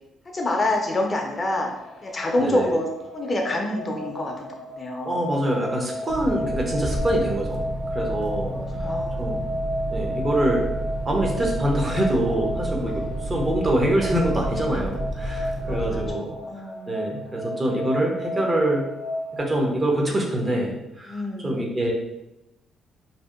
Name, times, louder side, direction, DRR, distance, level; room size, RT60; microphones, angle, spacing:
voice 1, 0.3-1.7 2.0-2.9 3.1-5.2 8.5-9.5 12.9-13.1 15.6-17.0 21.1-21.7, left 1 dB, 35° left, 1 dB, 0.4 m, -27 dB
sound 1, 1.3-19.4, equal, 85° left, 0.5 m, -33 dB
voice 2, 2.4-2.7 5.0-7.6 7.9-8.5 9.2-9.4 9.9-10.6 11.1-16.3 16.9-18.8 19.4-21.9, right 1 dB, 30° right, 0 dB, 0.6 m, -25 dB
sound 2, 6.1-16.1, right 1 dB, 85° right, 0.4 m, -31 dB
2.6 x 2.1 x 2.4 m, 0.89 s
cardioid pair, 90°, 0 cm